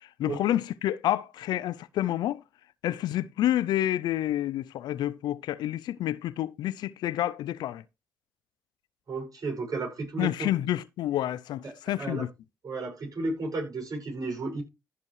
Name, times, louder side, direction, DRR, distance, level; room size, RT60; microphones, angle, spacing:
voice 1, 0.2-2.4 2.8-7.8 10.2-12.3, left 13 dB, 80° left, 0.5 m, -29 dB
voice 2, 9.1-10.5 11.6-11.7 12.0-12.2 12.6-14.6, right 3 dB, 55° right, 5.9 m, -33 dB
15.0 x 5.3 x 3.2 m
supercardioid pair, 45°, 7 cm